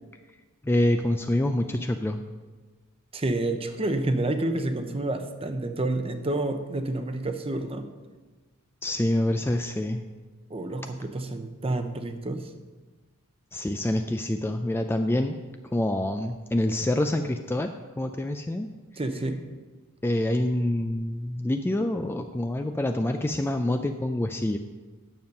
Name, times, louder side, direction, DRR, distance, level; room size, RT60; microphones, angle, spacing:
voice 1, 0.6-2.2 8.8-10.0 13.5-15.3 15.7-17.7 18.0-18.7 20.0-24.6, left 1 dB, 10° left, 6 dB, 0.3 m, -26 dB
voice 2, 3.1-7.9 10.5-12.5 19.0-19.4, right 2 dB, 25° right, 8 dB, 0.7 m, -29 dB
9.4 x 7.1 x 5.3 m, 1.3 s
head